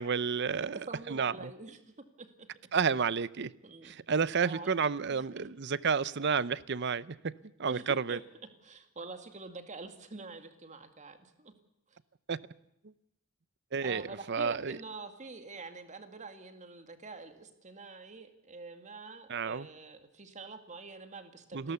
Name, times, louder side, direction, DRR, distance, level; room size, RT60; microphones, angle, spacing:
voice 1, 0.0-0.8 1.1-1.5 2.7-3.5 3.8-7.3 7.6-8.2 12.3-12.4 13.7-14.8 19.3-19.7 21.5-21.7, right 6 dB, 55° right, 19 dB, 0.7 m, -31 dB
voice 2, 0.6-1.8 2.2-2.5 3.6-3.9 4.4-4.7 5.1-5.5 7.7-8.2 8.6-11.5 11.9-12.0 13.8-21.7, right 3 dB, 35° right, 8 dB, 2.2 m, -46 dB
29.0 x 14.0 x 7.0 m, 0.84 s
head